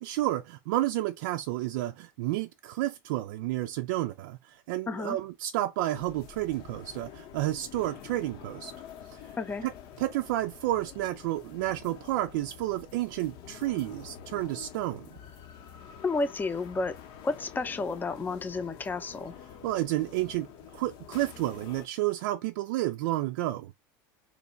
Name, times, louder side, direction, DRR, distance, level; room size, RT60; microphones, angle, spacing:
voice 1, 0.0-8.7 9.6-9.7 10.0-15.1 19.6-20.5 20.7-23.7, right 15 dB, 70° right, 0.4 m, -31 dB
voice 2, 4.9-5.2 9.4-9.6 16.0-17.0 17.2-19.3, left 3 dB, 20° left, 0.6 m, -31 dB
sound 1, 5.9-21.9, left 8 dB, 55° left, 0.7 m, -48 dB
3.1 x 2.2 x 3.8 m
hypercardioid pair, 95°, 11 cm